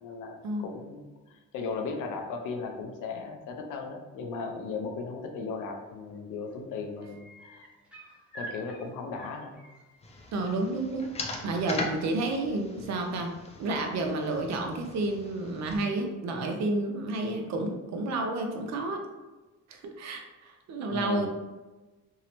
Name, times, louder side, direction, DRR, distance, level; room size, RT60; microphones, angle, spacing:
voice 1, 0.0-7.7 8.3-9.6 20.9-21.3, left 4 dB, 90° left, 3 dB, 0.5 m, -37 dB
sound 1, 5.8-6.2 6.5-10.5 12.2-12.3, right 2 dB, 5° right, 0.8 m, -48 dB
sound 2, 10.0-15.8, left 2 dB, 20° left, 0.4 m, -40 dB
voice 2, 10.3-13.3 13.6-19.0 19.7-21.3, right 2 dB, 65° right, 3 dB, 0.5 m, -31 dB
2.7 x 2.0 x 2.9 m, 1.2 s
cardioid pair, 90°, 30 cm